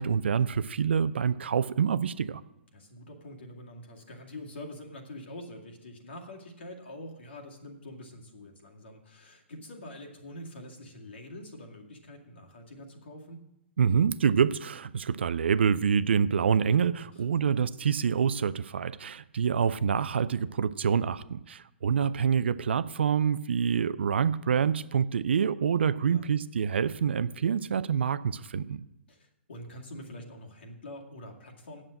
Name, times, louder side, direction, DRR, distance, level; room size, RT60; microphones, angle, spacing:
voice 1, 0.0-2.4 13.8-28.8, right 7 dB, 65° right, 15 dB, 0.5 m, -26 dB
voice 2, 2.7-13.4 17.1-17.5 26.1-26.3 29.1-31.8, left 1 dB, 65° left, 1 dB, 2.2 m, -45 dB
8.9 x 7.5 x 7.7 m, 0.85 s
figure-of-eight pair, 125°, 6 cm